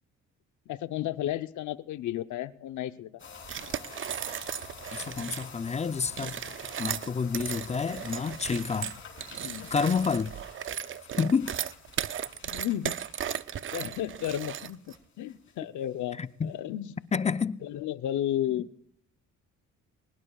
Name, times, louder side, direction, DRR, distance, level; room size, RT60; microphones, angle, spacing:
voice 1, 0.7-3.1 9.4-9.7 12.4-13.0 13.7-17.0 17.6-18.7, left 12 dB, 75° left, 0.8 m, -33 dB
sound 1, 3.2-15.5 15.8-16.2 16.5-16.6, left 5 dB, 40° left, 3.7 m, -49 dB
sound 2, 3.4-5.5 6.1-14.9, right 9 dB, 40° right, 0.5 m, -36 dB
voice 2, 4.9-6.4 6.8-9.0 9.7-10.3 11.2-11.5 16.2-16.5 17.1-17.6, left 5 dB, 20° left, 0.5 m, -29 dB
22.0 x 19.0 x 2.4 m
cardioid pair, 90°, 30 cm